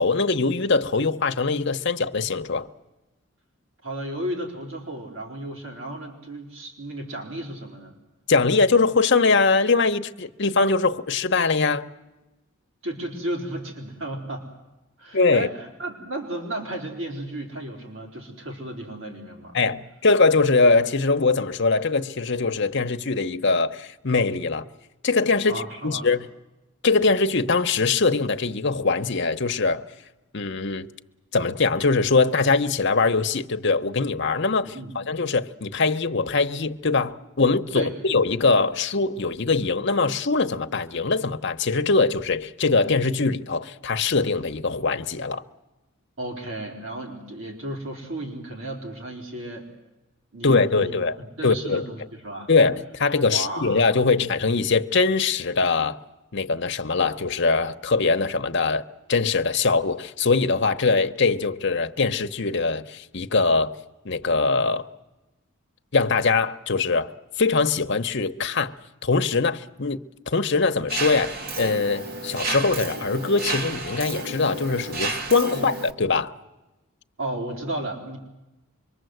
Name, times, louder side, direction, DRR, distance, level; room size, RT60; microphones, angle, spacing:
voice 1, 0.0-2.7 8.3-11.9 15.1-15.5 19.5-24.7 25.0-26.3 26.8-29.8 30.3-30.9 31.3-45.4 50.4-51.2 51.4-51.9 52.5-56.0 56.3-58.8 59.1-63.7 64.0-64.9 65.9-67.1 67.4-68.7 69.0-70.0 70.3-76.3, left 4 dB, 55° left, 1.0 m, -22 dB
voice 2, 3.8-8.0 12.8-14.4 15.0-19.6 25.5-26.1 34.6-35.0 37.7-37.9 46.2-49.7 50.3-52.5 53.3-53.8 75.5-75.7 77.2-78.2, right 1 dB, 75° right, 4.2 m, -34 dB
Mechanisms, 70.9-75.9, right 2 dB, 45° right, 1.9 m, -31 dB
25.5 x 23.0 x 8.0 m
head